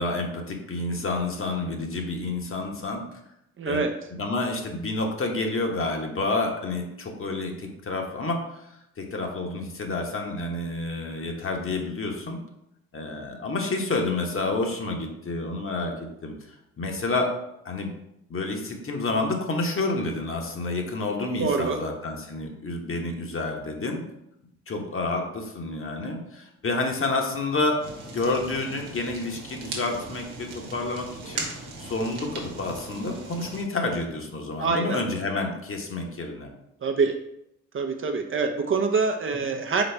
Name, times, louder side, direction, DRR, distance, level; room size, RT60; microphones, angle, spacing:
voice 1, 0.0-3.0 3.6-3.8 4.2-8.7 9.0-12.4 12.9-17.3 17.6-17.9 18.3-24.0 24.7-27.8 28.1-31.5 31.8-36.5 39.4-39.5, left 2 dB, 40° left, 2 dB, 1.0 m, -29 dB
voice 2, 3.6-3.9 21.4-21.8 34.6-35.0 36.8-37.2 37.7-39.8, right 4 dB, 35° right, 5 dB, 0.6 m, -25 dB
Fire, 27.8-33.6, right 3 dB, 85° right, 1.0 m, -38 dB
4.1 x 3.8 x 3.3 m, 0.82 s
hypercardioid pair, 55°, 35 cm